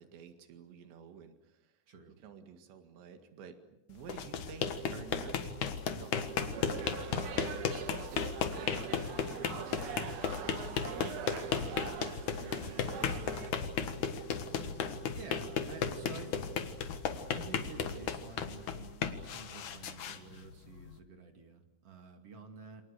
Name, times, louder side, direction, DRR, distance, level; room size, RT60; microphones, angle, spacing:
voice 1, 0.0-1.7 2.2-3.6 3.9-7.7 8.1-12.5 12.8-14.2 14.5-14.8 15.7-16.6, right 7 dB, 80° right, 7 dB, 4.2 m, -51 dB
voice 2, 1.9-2.2 15.1-16.7 17.3-22.9, right 4 dB, 40° right, 5 dB, 2.9 m, -50 dB
sound 1, 4.0-21.0, left 6 dB, 55° left, 2.5 m, -35 dB
sound 2, 6.4-13.5, right 7 dB, 55° right, 2.6 m, -43 dB
28.5 x 27.0 x 6.8 m, 0.89 s
omnidirectional pair, 5.0 m